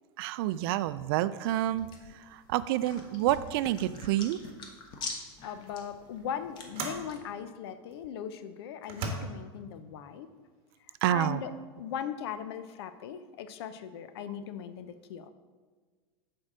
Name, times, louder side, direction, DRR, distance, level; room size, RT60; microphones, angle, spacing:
voice 1, 0.2-1.9 2.1-4.4 11.0-11.4, right 13 dB, 65° right, 15 dB, 0.4 m, -28 dB
sound 1, 1.5-7.2, left 4 dB, 35° left, 1.1 m, -45 dB
sound 2, 4.4-4.7 5.7-5.8 6.7-7.1 7.9-8.0 8.8-9.1, right 4 dB, 45° right, 1.3 m, -37 dB
voice 2, 5.4-10.3 11.1-11.5 11.8-15.3, left 8 dB, 75° left, 11 dB, 0.6 m, -39 dB
6.5 x 4.6 x 6.1 m, 1.5 s
supercardioid pair, 145°, 13 cm